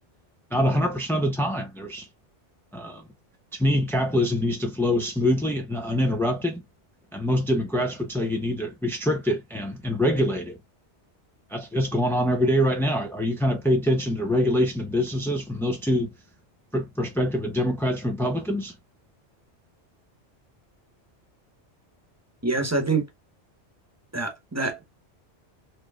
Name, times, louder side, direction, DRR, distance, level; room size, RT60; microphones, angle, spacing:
voice 1, 0.5-2.1 2.7-3.0 3.5-6.6 7.1-10.6 11.5-16.1 16.7-18.8, equal, 5° left, 0.3 m, -24 dB
voice 2, 22.4-23.1 24.1-24.8, right 3 dB, 15° right, 1.0 m, -25 dB
4.5 x 3.1 x 2.3 m
omnidirectional pair, 1.2 m